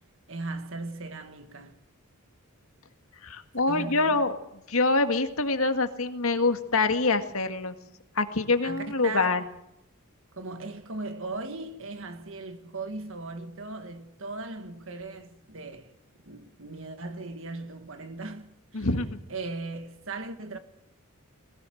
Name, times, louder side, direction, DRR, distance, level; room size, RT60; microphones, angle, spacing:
voice 1, 0.3-1.8 3.7-4.2 8.6-9.4 10.3-15.9 16.2-18.9 19.3-20.6, right 3 dB, 65° right, 1.9 m, -38 dB
voice 2, 3.2-4.4 4.7-7.8 8.2-9.4 18.7-19.2, left 3 dB, 70° left, 1.8 m, -25 dB
20.5 x 17.5 x 7.8 m
head